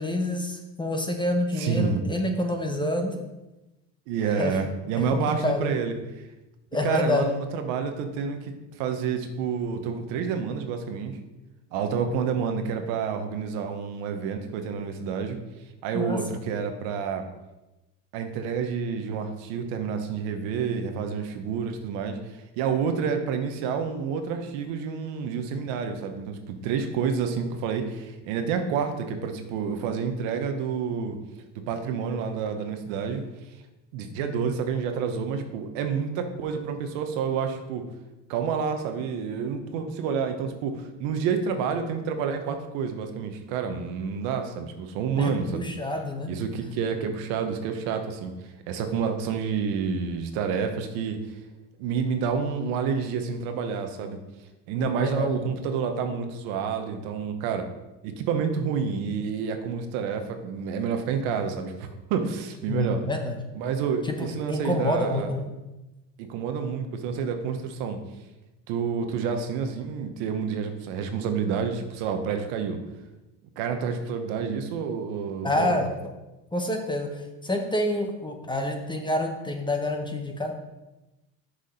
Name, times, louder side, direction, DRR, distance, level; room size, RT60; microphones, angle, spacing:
voice 1, 0.0-3.2 4.4-4.5 5.0-5.7 6.7-7.3 15.9-16.4 34.2-34.5 45.2-46.3 54.8-55.3 62.7-63.4 64.1-65.4 75.4-75.9 76.5-77.1 77.4-80.5, left 1 dB, 10° left, 3 dB, 1.1 m, -28 dB
voice 2, 1.6-2.0 4.1-5.9 6.8-8.5 8.8-11.2 11.7-15.4 15.8-17.3 18.1-22.2 22.6-31.2 31.5-33.2 33.9-37.8 38.3-45.7 46.2-48.3 48.7-51.3 51.8-54.2 54.7-57.7 58.0-63.0 63.5-65.3 66.2-68.0 68.7-72.8 73.6-75.8, right 6 dB, 80° right, 6 dB, 1.2 m, -29 dB
6.5 x 4.9 x 5.6 m, 1.0 s
supercardioid pair, 95°, 44 cm